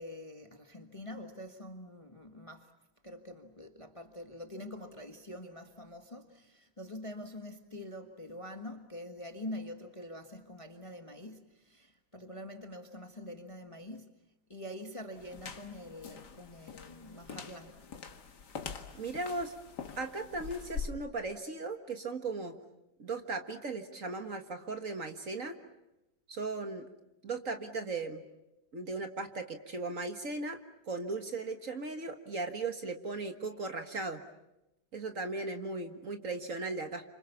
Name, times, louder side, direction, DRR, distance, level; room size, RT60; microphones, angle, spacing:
voice 1, 0.0-2.7 3.0-14.1 14.5-17.8, left 1 dB, 20° left, 6 dB, 1.4 m, -45 dB
sound 1, 15.2-20.9, left 6 dB, 60° left, 2.1 m, -44 dB
voice 2, 18.9-19.5 20.0-22.6 23.0-25.6 26.3-26.9 27.2-28.2 28.7-30.6 30.9-34.2 34.9-37.0, right 3 dB, 45° right, 6 dB, 1.9 m, -37 dB
29.5 x 26.5 x 7.1 m, 0.90 s
omnidirectional pair, 2.1 m